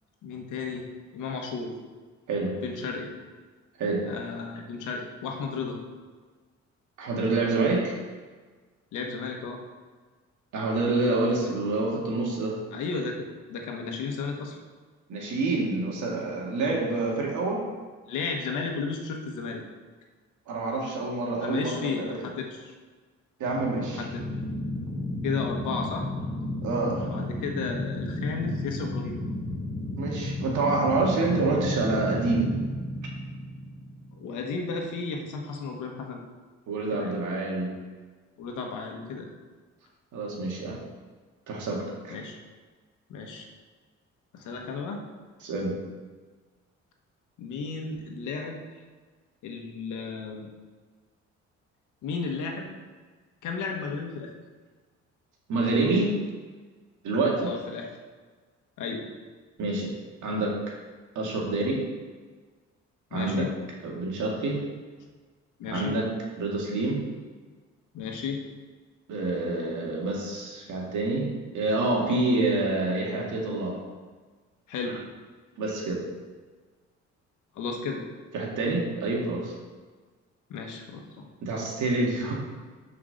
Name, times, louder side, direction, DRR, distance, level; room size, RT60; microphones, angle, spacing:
voice 1, 0.2-1.8 2.6-3.1 4.1-5.8 8.9-9.6 11.3-11.4 12.7-14.6 18.1-19.6 21.4-22.7 23.9-24.2 25.2-26.1 27.0-29.2 34.1-36.2 36.9-37.1 38.4-39.3 42.1-42.4 43.1-43.5 44.3-45.0 47.4-48.6 49.4-50.5 52.0-52.7 53.4-54.3 57.4-57.9 58.8-59.1 63.1-63.6 65.6-65.9 67.9-68.4 74.7-75.0 77.5-78.1 80.5-81.2, left 4 dB, 80° left, 2 dB, 1.4 m, -33 dB
voice 2, 2.3-2.6 3.8-4.1 7.0-8.0 10.5-12.6 15.1-17.7 20.5-22.3 23.4-24.1 26.6-27.1 30.0-32.6 36.7-37.8 40.1-40.8 41.5-42.2 45.4-45.8 55.5-56.2 57.0-57.5 59.6-59.9 60.2-60.6 61.2-61.8 63.1-63.5 63.8-64.6 65.7-66.1 66.4-67.0 69.1-73.8 74.8-74.9 75.6-76.0 78.3-79.5 81.4-82.3, right 2 dB, 75° right, -2 dB, 2.1 m, -27 dB
sound 1, 23.4-34.4, left 1 dB, 15° left, 1.5 m, -33 dB
6.2 x 5.0 x 6.6 m, 1.4 s
cardioid pair, 90°, 30 cm